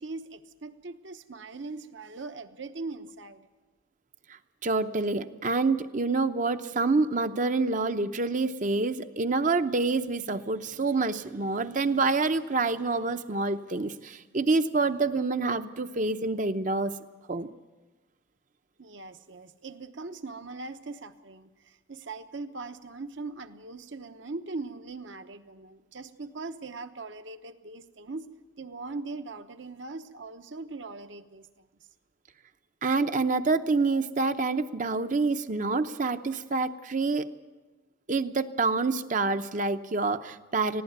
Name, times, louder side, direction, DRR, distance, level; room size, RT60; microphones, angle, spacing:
voice 1, 0.0-3.4 18.8-28.3 28.6-31.6, right 3 dB, 60° right, 10 dB, 1.0 m, -40 dB
voice 2, 4.6-16.9 17.3-17.6 32.8-37.3 38.1-40.8, right 3 dB, 40° right, 10 dB, 0.7 m, -27 dB
20.0 x 15.5 x 9.3 m, 1.2 s
head